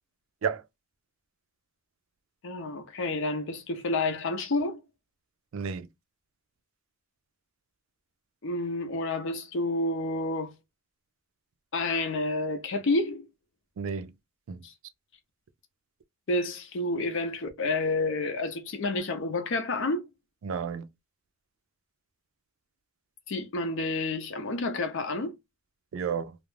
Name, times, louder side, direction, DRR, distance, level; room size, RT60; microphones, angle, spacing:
voice 1, 2.4-4.8 8.4-10.5 11.7-13.3 14.6-14.7 16.3-20.1 23.3-25.3, left 2 dB, 65° left, 0.6 m, -29 dB
voice 2, 5.5-5.9 13.8-14.1 14.5-14.6 20.4-20.9 25.9-26.4, right 6 dB, 75° right, 0.4 m, -32 dB
2.4 x 2.1 x 3.2 m
head